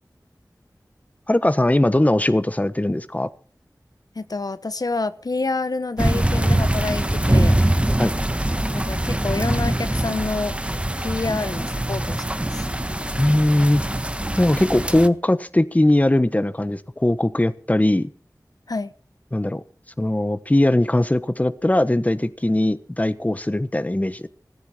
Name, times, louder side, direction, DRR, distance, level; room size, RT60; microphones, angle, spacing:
voice 1, 1.3-3.3 8.0-8.1 13.2-13.8 14.4-18.1 19.3-19.6 20.0-24.3, left 1 dB, 20° left, 13 dB, 1.2 m, -20 dB
voice 2, 4.1-7.6 8.7-10.6 11.0-12.6 18.7-18.9, left 3 dB, 70° left, 12 dB, 1.1 m, -28 dB
sound 1, 6.0-15.1, right 1 dB, 15° right, 1.4 m, -23 dB
17.5 x 15.0 x 4.4 m, 0.42 s
wide cardioid pair, 60°, 7 cm